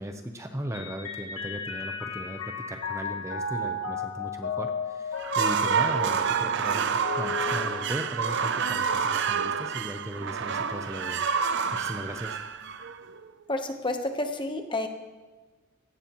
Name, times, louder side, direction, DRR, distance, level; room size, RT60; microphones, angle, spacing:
voice 1, 0.0-11.2 11.7-12.4, equal, 15° right, 5 dB, 0.8 m, -37 dB
Mallet percussion, 0.7-8.5, left 3 dB, 70° left, 1.4 m, -35 dB
sound 1, 5.1-13.3, right 6 dB, 55° right, 0.6 m, -28 dB
voice 2, 13.5-14.9, left 2 dB, 20° left, 5 dB, 1.0 m, -30 dB
17.5 x 16.0 x 3.1 m, 1.3 s
head